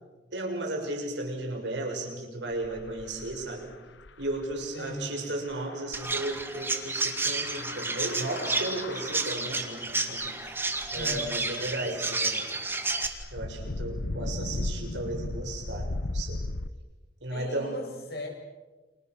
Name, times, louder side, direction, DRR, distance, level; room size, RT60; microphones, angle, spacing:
voice 1, 0.3-3.7 4.2-10.6 10.9-12.4 13.3-16.4 17.2-17.8, right 2 dB, 80° right, 2 dB, 6.7 m, -35 dB
sound 1, 2.5-4.7 5.5-11.5 13.0-16.7, left 2 dB, 90° left, 1.0 m, -37 dB
voice 2, 4.7-5.3 10.9-11.9 17.3-18.3, left 1 dB, 60° left, 1 dB, 8.0 m, -39 dB
Chirp tweet, 5.9-13.1, right 3 dB, 10° right, 2.2 m, -31 dB
30.0 x 27.5 x 6.4 m, 1.2 s
head